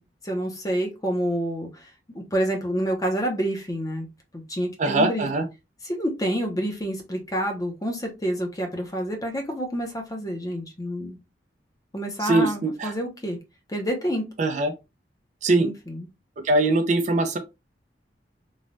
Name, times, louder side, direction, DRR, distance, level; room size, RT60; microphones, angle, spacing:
voice 1, 0.2-4.1 4.3-5.3 5.8-11.2 11.9-13.4 13.7-14.2 15.6-16.1, equal, 20° left, 0.6 m, -28 dB
voice 2, 4.8-5.4 12.2-12.9 14.4-14.7 15.4-15.7 16.4-17.4, right 2 dB, 45° right, 0.4 m, -22 dB
3.1 x 2.2 x 2.5 m
head